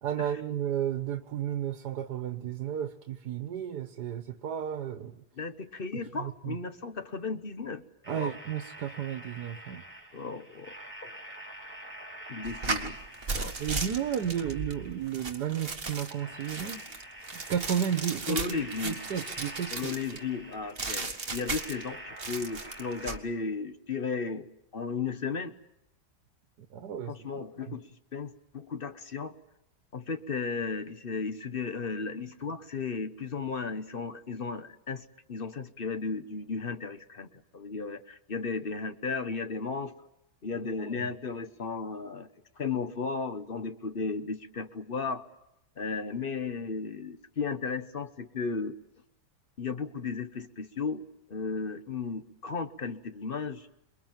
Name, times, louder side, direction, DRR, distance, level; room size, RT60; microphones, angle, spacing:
voice 1, 0.0-5.2 6.2-6.6 8.1-9.8 13.6-16.8 17.3-18.4 18.8-19.9 26.7-27.1 27.7-27.8 40.8-41.1, right 9 dB, 85° right, 8 dB, 1.7 m, -33 dB
voice 2, 5.4-8.4 10.1-10.7 11.0-11.2 12.3-13.0 13.3-13.6 18.3-19.0 19.7-25.5 27.0-29.4 29.9-39.9 40.4-42.3 42.6-45.2 45.8-48.8 49.6-51.0 51.3-53.7, left 4 dB, 40° left, 10 dB, 1.1 m, -35 dB
sound 1, 8.0-23.2, right 1 dB, 5° left, 5.0 m, -46 dB
sound 2, 12.4-20.2 20.8-21.9 22.2-23.2, right 4 dB, 35° right, 1.9 m, -36 dB
28.5 x 22.0 x 7.4 m, 0.88 s
omnidirectional pair, 1.7 m